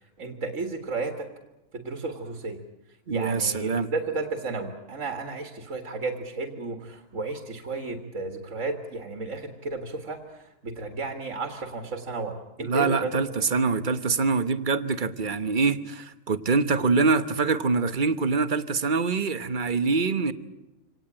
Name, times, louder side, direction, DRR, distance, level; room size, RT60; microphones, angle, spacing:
voice 1, 0.2-1.3 1.7-2.6 3.1-13.1, right 3 dB, 65° right, 2.2 m, -33 dB
voice 2, 3.1-3.9 12.6-20.3, right 4 dB, 40° right, 1.2 m, -24 dB
26.0 x 18.5 x 8.8 m
omnidirectional pair, 1.4 m